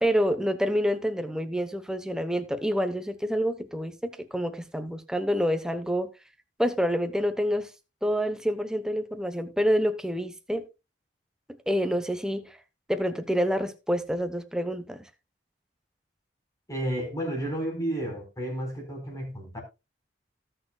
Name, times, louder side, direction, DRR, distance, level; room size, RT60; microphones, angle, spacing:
voice 1, 0.0-6.1 6.6-7.7 8.0-10.7 11.7-12.6 12.9-15.0, equal, 5° right, 1.0 m, -27 dB
voice 2, 16.7-19.6, right 1 dB, 20° left, 4.8 m, -32 dB
18.5 x 6.7 x 2.4 m
head